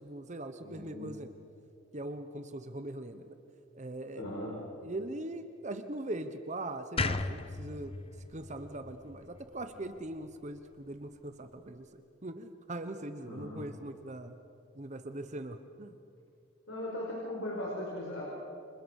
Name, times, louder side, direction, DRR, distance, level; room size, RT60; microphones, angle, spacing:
voice 1, 0.0-1.3 1.9-3.3 3.7-4.3 4.8-7.9 8.3-14.4 14.7-16.0, right 1 dB, 35° right, 9 dB, 1.0 m, -41 dB
voice 2, 0.6-1.1 4.1-4.6 13.2-13.7 16.7-18.2, left 1 dB, 65° left, -3 dB, 5.5 m, -38 dB
sound 1, 7.0-10.1, left 3 dB, 30° left, 0.8 m, -36 dB
30.0 x 25.5 x 6.5 m, 2.6 s
head